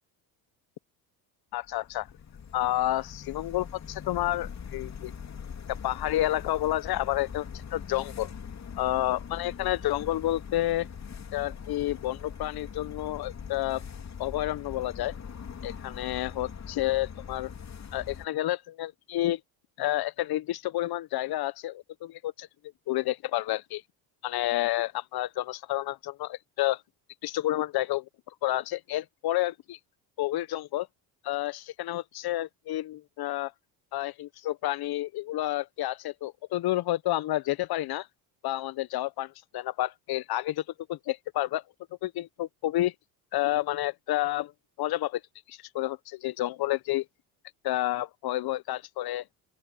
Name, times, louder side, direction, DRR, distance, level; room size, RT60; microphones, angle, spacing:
voice 1, 1.5-2.1 2.5-5.1 5.7-7.5 7.7-8.3 8.8-10.9 11.3-13.8 14.2-15.1 15.6-17.5 17.9-19.4 19.8-22.5 22.9-23.8 24.2-26.8 27.2-29.8 30.2-30.9 31.2-33.5 33.9-38.1 38.4-40.6 40.9-41.6 42.0-42.9 43.3-44.5 44.8-45.2 45.5-47.0 47.6-49.2, left 15 dB, 55° left, 1.0 m, -30 dB
sound 1, 1.7-18.3, left 7 dB, 35° left, 3.1 m, -42 dB
open air
supercardioid pair, 85°, 46 cm